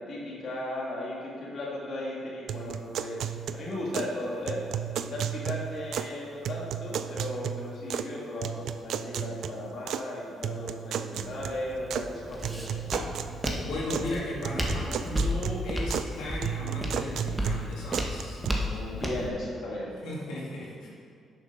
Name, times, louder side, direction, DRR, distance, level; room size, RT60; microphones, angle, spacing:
voice 1, 0.0-3.2 3.5-4.6 5.0-12.8 18.9-20.0, left 1 dB, 55° left, -5 dB, 1.8 m, -36 dB
sound 1, 2.5-4.2 4.5-6.2 6.4-8.1 8.4-10.1 10.4-12.1 12.4-14.1 14.4-16.1 16.4-18.5, right 9 dB, 70° right, 0.3 m, -34 dB
Walk footsteps, 11.2-19.3, equal, 15° right, 1.1 m, -33 dB
voice 2, 13.6-19.1 19.7-20.9, left 1 dB, 85° left, -6 dB, 1.9 m, -36 dB
6.7 x 6.0 x 5.3 m, 2.3 s
cardioid pair, 90°, 0 cm